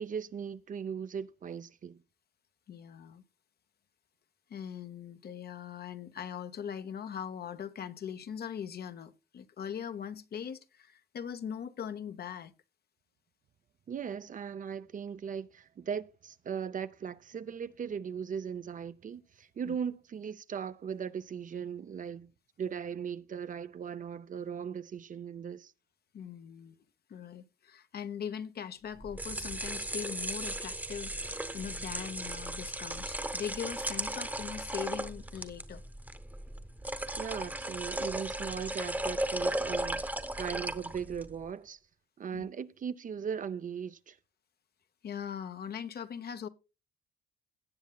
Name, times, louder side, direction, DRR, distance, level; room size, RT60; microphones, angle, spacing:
voice 1, 0.0-2.0 13.9-22.3 22.6-25.7 37.1-41.8 42.2-44.2, right 7 dB, 40° right, 0.6 m, -38 dB
voice 2, 2.7-3.2 4.5-12.5 19.7-19.8 26.1-26.8 27.1-35.8 42.3-42.5 45.0-46.5, left 8 dB, 55° left, 0.8 m, -41 dB
sound 1, 29.0-41.3, right 1 dB, 10° right, 0.9 m, -36 dB
17.5 x 7.2 x 2.3 m
cardioid pair, 90°, 20 cm